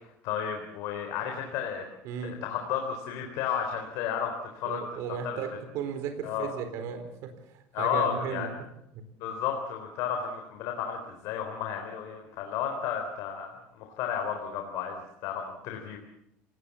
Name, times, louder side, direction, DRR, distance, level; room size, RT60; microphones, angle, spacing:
voice 1, 0.2-1.8 2.2-4.9 5.2-5.4 6.2-6.5 7.7-8.5 9.2-16.0, left 8 dB, 65° left, 3 dB, 3.8 m, -32 dB
voice 2, 2.0-2.4 4.6-5.5 5.7-7.3 7.8-8.5 8.9-9.0, right 7 dB, 60° right, 7 dB, 4.4 m, -35 dB
28.5 x 18.5 x 7.3 m, 0.81 s
cardioid pair, 160°, 6 cm